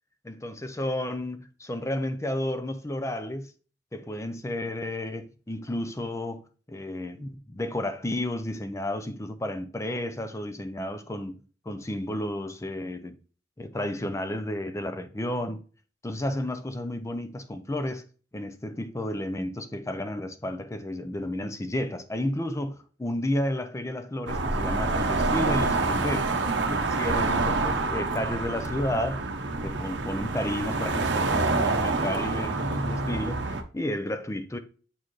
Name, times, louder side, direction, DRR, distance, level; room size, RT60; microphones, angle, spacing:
voice 1, 0.2-3.5 3.9-6.4 6.7-13.1 13.6-15.6 16.0-18.0 18.3-26.3 26.7-29.2 29.6-34.6, left 1 dB, 15° left, 0.6 m, -32 dB
sound 1, 24.3-33.6, right 3 dB, 75° right, 0.8 m, -27 dB
7.3 x 4.5 x 3.1 m
head